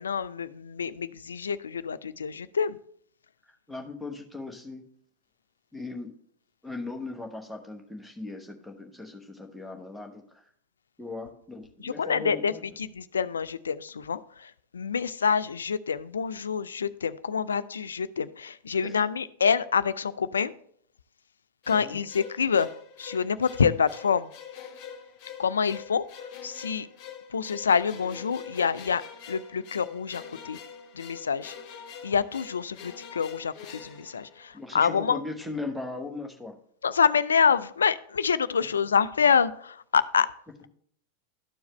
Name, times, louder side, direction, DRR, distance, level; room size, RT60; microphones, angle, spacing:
voice 1, 0.0-2.8 11.8-12.5 12.8-20.5 21.7-22.7 23.0-24.3 25.4-26.0 26.4-26.9 27.3-29.0 29.3-30.6 30.9-31.5 32.0-35.2 36.8-40.3, left 6 dB, 70° left, 16 dB, 0.3 m, -26 dB
voice 2, 3.7-4.8 5.7-6.1 6.6-10.5 11.0-12.6 18.8-19.0 21.7-22.0 34.5-36.6, left 3 dB, ahead, 3 dB, 1.1 m, -38 dB
sound 1, 21.6-34.9, left 7 dB, 40° left, 1.1 m, -45 dB
13.0 x 4.7 x 3.1 m, 0.63 s
figure-of-eight pair, 90°, 0 cm